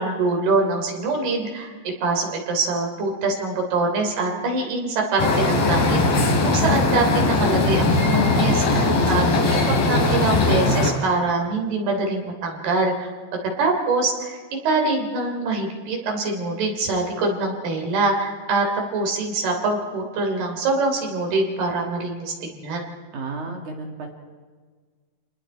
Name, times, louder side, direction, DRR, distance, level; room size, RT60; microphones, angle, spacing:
voice 1, 0.0-1.7 2.0-9.6 9.9-13.1 13.4-18.7 18.9-22.8, right 3 dB, 85° right, 1 dB, 5.3 m, -24 dB
sound 1, 5.2-10.9, left 3 dB, 70° left, 4.6 m, -19 dB
voice 2, 8.7-9.4 23.1-24.1, right 2 dB, 55° right, 2 dB, 3.3 m, -32 dB
29.0 x 20.0 x 4.5 m, 1.6 s
omnidirectional pair, 4.4 m